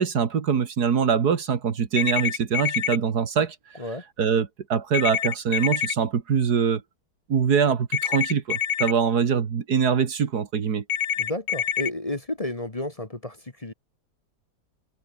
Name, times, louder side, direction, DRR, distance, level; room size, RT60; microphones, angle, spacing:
voice 1, 0.0-3.6 4.2-6.8 7.3-10.8, right 7 dB, 70° right, 2.1 m, -23 dB
sound 1, 2.0-3.0 4.9-5.9 7.9-8.9 10.9-11.9, left 8 dB, 60° left, 1.5 m, -26 dB
voice 2, 11.2-13.7, left 1 dB, 20° left, 1.7 m, -32 dB
omnidirectional pair, 1.8 m